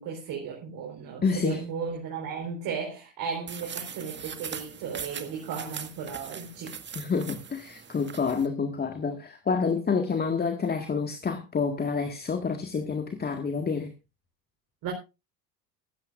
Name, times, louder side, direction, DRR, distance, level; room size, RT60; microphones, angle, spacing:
voice 1, 0.0-6.8 14.8-14.9, right 6 dB, 45° right, 4.4 m, -35 dB
voice 2, 1.2-1.7 7.0-13.9, left 5 dB, 20° left, 1.8 m, -28 dB
sound 1, 3.5-8.5, right 7 dB, 25° right, 1.7 m, -40 dB
15.5 x 14.5 x 2.5 m
figure-of-eight pair, 75°, 47 cm